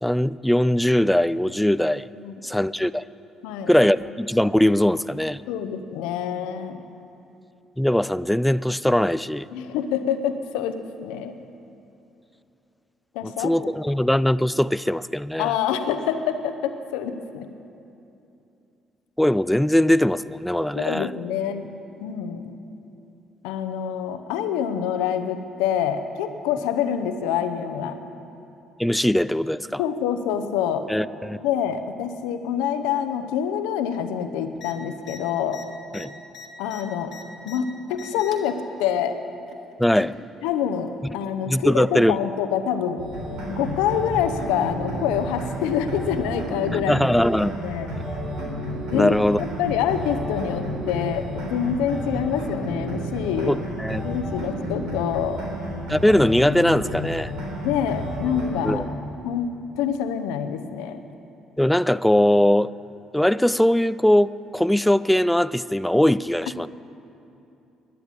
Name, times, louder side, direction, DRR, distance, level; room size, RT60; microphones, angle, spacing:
voice 1, 0.0-2.1 2.4-3.0 3.7-5.4 7.8-9.5 13.2-15.5 19.2-21.1 28.8-29.8 30.9-31.4 35.9-36.1 39.8-40.1 41.5-42.2 46.7-47.6 48.9-49.4 53.5-54.0 55.9-57.3 58.6-58.8 61.6-62.7 63.1-66.7, left 1 dB, 5° left, 17 dB, 0.3 m, -20 dB
voice 2, 5.5-6.8 9.5-11.3 13.1-13.7 15.4-17.5 20.7-21.7 22.0-22.5 23.4-28.0 29.8-30.9 31.4-35.6 36.6-37.1 37.5-39.2 40.4-43.0 43.5-47.1 47.6-47.9 48.9-53.6 54.0-55.4 57.6-58.8 59.2-59.5 59.8-61.0, left 8 dB, 85° left, 9 dB, 0.7 m, -26 dB
sound 1, 34.5-34.7 35.0-35.2 35.5-37.6 37.9-38.5 39.5-40.2 41.2-41.3, left 5 dB, 65° left, 1.2 m, -42 dB
sound 2, 43.0-58.8, equal, 80° right, 3.6 m, -31 dB
12.0 x 9.9 x 8.7 m, 2.8 s
supercardioid pair, 65°, 0 cm